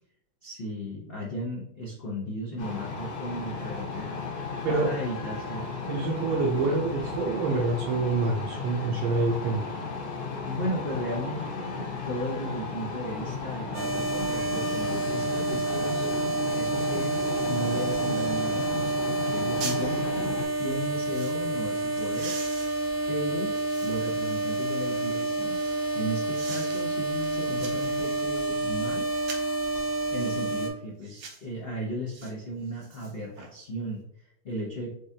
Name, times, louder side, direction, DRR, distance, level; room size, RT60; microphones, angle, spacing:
voice 1, 0.4-4.2 4.7-5.7 10.5-16.1 16.5-18.9 19.3-22.4 23.1-23.5 23.8-25.6 25.9-29.1 30.1-34.9, equal, 85° left, -4 dB, 0.5 m, -35 dB
sound 1, 2.6-20.4, left 4 dB, 50° left, 1.5 m, -35 dB
voice 2, 5.9-9.6, right 3 dB, 70° right, -1 dB, 1.4 m, -26 dB
sound 2, 13.7-30.7, right 2 dB, 40° right, 0.8 m, -29 dB
sound 3, 18.8-19.0 19.3-19.8 20.6-21.4 21.9-24.2 24.7-25.8 26.3-26.8 27.2-28.6 29.2-29.6 30.2-30.4 31.0-31.5 32.1-32.3 32.7-33.5 33.8-33.9, right 4 dB, 90° right, 1.9 m, -43 dB
4.9 x 3.5 x 2.7 m, 0.78 s
omnidirectional pair, 2.4 m